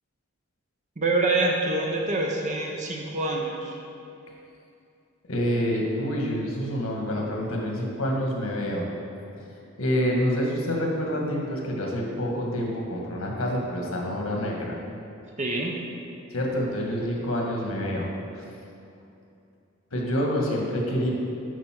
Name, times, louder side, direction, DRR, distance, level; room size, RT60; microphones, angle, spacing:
voice 1, 1.0-3.8 15.4-15.8, right 2 dB, 35° right, -1 dB, 0.7 m, -26 dB
voice 2, 5.3-8.9 9.8-14.8 16.3-18.4 19.9-21.1, equal, 85° left, -1 dB, 1.7 m, -27 dB
8.3 x 5.3 x 5.9 m, 2.6 s
head